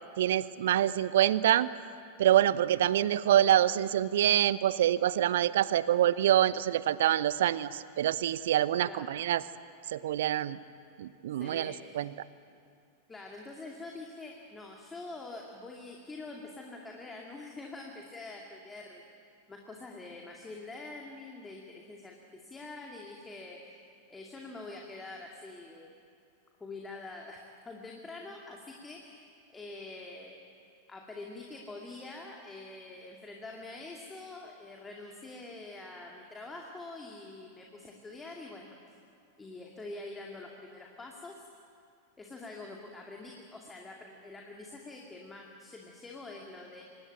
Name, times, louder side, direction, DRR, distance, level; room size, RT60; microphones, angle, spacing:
voice 1, 0.2-1.7 2.2-9.4 9.9-10.6 11.0-12.1, right 11 dB, 60° right, 18 dB, 0.7 m, -26 dB
voice 2, 8.8-9.1 11.4-12.1 13.1-19.0 19.5-23.6 24.1-25.9 26.6-30.4 30.9-38.8 39.4-41.4 42.2-46.8, left 2 dB, 15° left, 0 dB, 2.4 m, -45 dB
25.0 x 19.5 x 9.1 m, 2.5 s
figure-of-eight pair, 90°, 0 cm